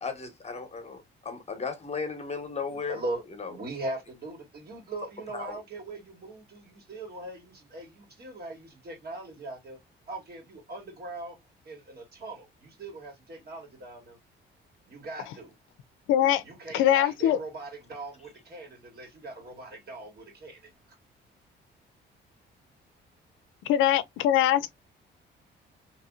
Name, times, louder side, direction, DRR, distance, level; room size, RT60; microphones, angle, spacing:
voice 1, 0.0-3.0 3.4-3.5 5.3-5.6, left 5 dB, 35° left, 1.0 m, -35 dB
voice 2, 2.7-9.8 10.1-11.4 11.6-14.2 14.9-15.5 16.4-20.7, right 2 dB, 50° right, 1.9 m, -40 dB
voice 3, 16.1-16.4 16.7-17.4 23.7-24.7, left 11 dB, 90° left, 0.4 m, -22 dB
2.9 x 2.9 x 2.3 m
cardioid pair, 90°, 20 cm